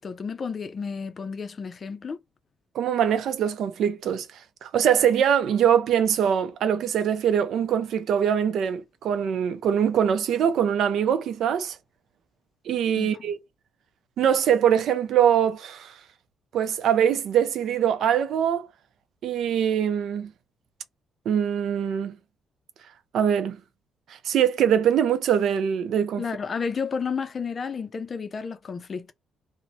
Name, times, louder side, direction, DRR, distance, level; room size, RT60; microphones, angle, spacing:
voice 1, 0.0-2.2 13.0-13.3 26.2-29.1, left 5 dB, 40° left, 0.4 m, -32 dB
voice 2, 2.7-4.3 4.6-11.8 12.7-13.4 14.2-15.9 16.5-18.7 19.2-20.3 21.3-22.2 23.1-23.6 24.2-26.2, right 9 dB, 70° right, 0.4 m, -23 dB
2.7 x 2.0 x 2.6 m
cardioid pair, 90°, 0 cm